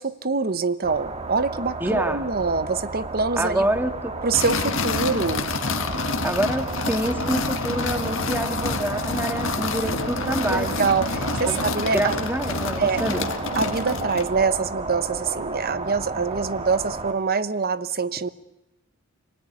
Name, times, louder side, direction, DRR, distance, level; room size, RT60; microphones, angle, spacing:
voice 1, 0.0-3.6 4.2-5.5 10.5-12.1 12.8-13.0 13.6-18.3, right 4 dB, 45° right, 14 dB, 1.1 m, -25 dB
sound 1, 0.8-17.1, right 3 dB, 30° right, 1.9 m, -33 dB
voice 2, 1.8-2.2 3.4-4.1 6.2-10.8 11.5-11.6 11.9-13.3, right 1 dB, 10° right, 6 dB, 2.0 m, -26 dB
sound 2, 4.3-14.4, left 3 dB, 65° left, 1.7 m, -28 dB
29.5 x 19.0 x 9.7 m, 0.94 s
head